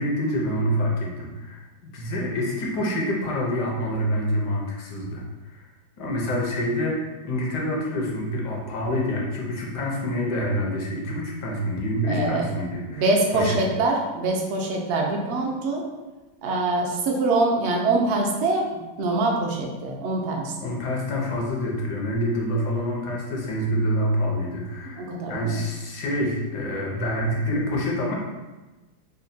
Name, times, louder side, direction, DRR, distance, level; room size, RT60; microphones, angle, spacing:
voice 1, 0.0-5.6 6.0-13.1 13.3-13.6 20.6-28.2, equal, 75° left, -2 dB, 1.4 m, -27 dB
voice 2, 12.1-12.5 12.8-15.8 16.4-18.7 19.0-20.5 24.9-25.6, right 2 dB, 75° right, 0 dB, 0.6 m, -24 dB
5.4 x 2.1 x 2.6 m, 1.1 s
omnidirectional pair, 1.8 m